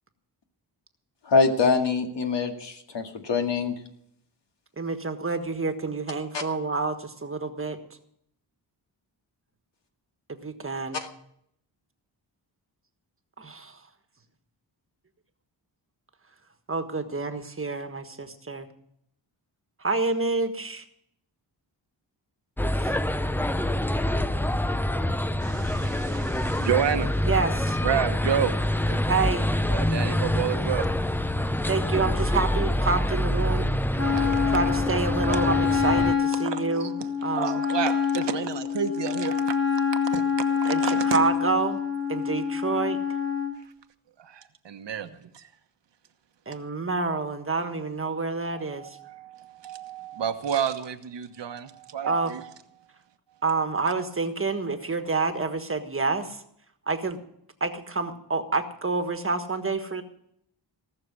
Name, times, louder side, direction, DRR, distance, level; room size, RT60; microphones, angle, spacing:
voice 1, 1.3-3.7 6.3-6.4, left 4 dB, 70° left, 4 dB, 2.2 m, -24 dB
voice 2, 4.8-7.8 10.3-11.0 13.4-13.8 16.7-18.7 19.8-20.8 22.8-23.0 27.3-27.8 29.1-29.5 31.7-33.7 34.5-36.9 37.2-37.6 40.7-41.8 42.1-43.0 46.5-49.0 52.1-52.3 53.4-56.4 56.9-57.2 57.6-60.0, right 4 dB, 30° right, 8 dB, 1.5 m, -28 dB
sound 1, 22.6-36.1, left 1 dB, 5° left, 0.5 m, -26 dB
voice 3, 25.4-27.1 27.8-28.5 28.9-29.0 29.7-30.9 34.0-34.4 36.4-37.1 37.3-39.6 40.1-40.2 40.6-41.2 44.2-45.5 48.5-52.5, right 8 dB, 70° right, 8 dB, 1.2 m, -30 dB
Wind instrument woodwind instrument, 34.0-43.6, left 6 dB, 30° left, 2.3 m, -26 dB
18.0 x 6.7 x 9.7 m, 0.72 s
wide cardioid pair, 105°, 45 cm